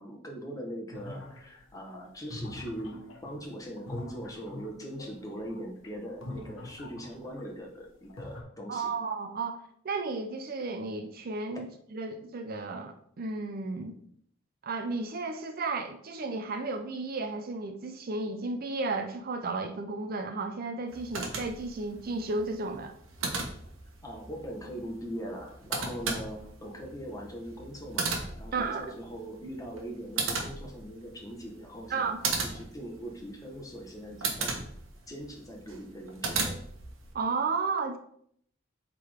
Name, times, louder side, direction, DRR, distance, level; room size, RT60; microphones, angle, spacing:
voice 1, 0.0-3.0 3.2-8.9 24.0-32.2 32.4-34.6 35.1-36.6, equal, 15° left, 0 dB, 1.2 m, -41 dB
sound 1, 0.9-7.6 7.9-8.4, left 2 dB, 75° left, 1.2 m, -44 dB
voice 2, 8.7-14.0 14.6-22.9 28.5-28.9 31.9-32.2 37.1-38.0, right 3 dB, 50° right, 7 dB, 0.5 m, -33 dB
sound 2, 20.9-37.1, right 4 dB, 80° right, 1.2 m, -37 dB
7.6 x 3.7 x 3.5 m, 0.67 s
head